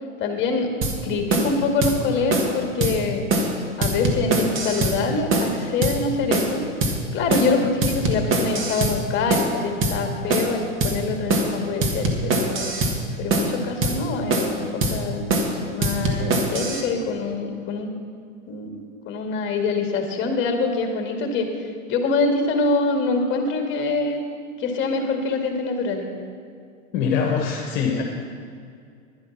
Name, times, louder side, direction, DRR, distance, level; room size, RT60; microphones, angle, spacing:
voice 1, 0.2-0.7 1.0-3.3 3.8-6.6 7.1-12.7 13.2-15.3 15.7-17.9 18.5-21.5 21.9-24.2 24.6-26.1, left 3 dB, 30° left, 4 dB, 2.0 m, -25 dB
sound 1, 0.8-1.0 1.3-1.5 1.8-2.0 2.3-2.5 2.8-3.0 3.3-3.5 3.8-5.0 5.3-5.5 5.8-6.0 6.3-6.5 6.8-7.0 7.3-7.5 7.8-9.0 9.3-9.5 9.8-10.0 10.3-10.5 10.8-11.0 11.3-11.5 11.8-13.0 13.3-13.5 13.8-14.0 14.3-14.6 14.8-15.0 15.3-15.5 15.8-16.8, right 2 dB, 30° right, 1.7 m, -22 dB
voice 2, 26.9-28.0, left 6 dB, 50° left, 2 dB, 1.3 m, -23 dB
10.5 x 10.5 x 5.9 m, 2.3 s
hypercardioid pair, 120°, 40 cm